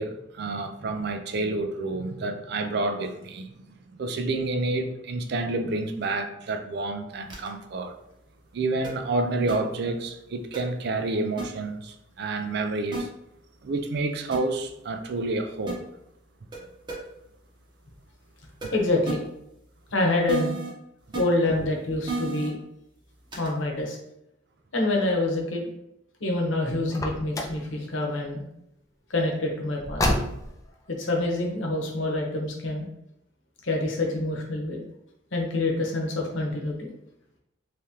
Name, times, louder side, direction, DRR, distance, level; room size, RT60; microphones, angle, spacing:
voice 1, 0.0-3.5 3.9-7.9 8.5-13.1 13.6-15.8 18.6-18.7, right 2 dB, 60° right, 0.4 m, -29 dB
sound 1, 7.3-7.5 8.8-8.9 9.5-9.6 10.5-10.6 11.4-11.5 12.9-13.0 14.3-14.4 15.7-15.8 16.5-16.6 16.9-17.0 18.6-18.7 19.1-19.2 20.3-20.7 21.1-21.2 22.1-22.5 23.3-23.5, right 4 dB, 25° right, 0.8 m, -32 dB
voice 2, 18.7-19.2 19.9-20.5 21.1-22.6 23.4-24.0 24.7-25.6 26.2-28.4 29.1-30.1 30.9-32.9 33.6-34.8 35.3-36.9, left 2 dB, 85° left, 0.9 m, -26 dB
Car, 26.9-27.7 29.8-30.7, left 1 dB, 15° left, 0.4 m, -28 dB
3.6 x 3.3 x 2.8 m
head